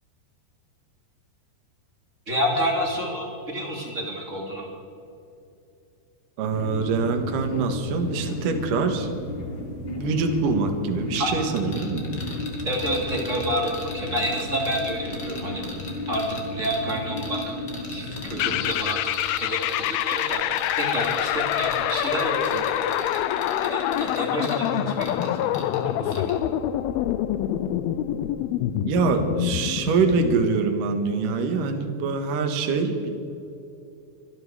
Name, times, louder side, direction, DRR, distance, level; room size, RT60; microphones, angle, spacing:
voice 1, 2.3-4.7 11.2-11.3 12.6-15.7 16.1-17.5 17.9-19.0 19.4-20.4 20.7-22.7 23.6-26.3, equal, 20° right, -2 dB, 2.7 m, -29 dB
voice 2, 6.4-9.1 9.8-12.1 28.7-33.1, right 4 dB, 60° right, 5 dB, 2.8 m, -24 dB
sound 1, 6.5-18.7, left 1 dB, 60° left, 1.2 m, -33 dB
sound 2, 11.2-25.8 26.1-26.4, left 3 dB, 35° left, 2.4 m, -39 dB
sound 3, 18.4-30.5, left 12 dB, 80° left, 2.3 m, -26 dB
25.0 x 12.0 x 4.9 m, 2.7 s
omnidirectional pair, 4.7 m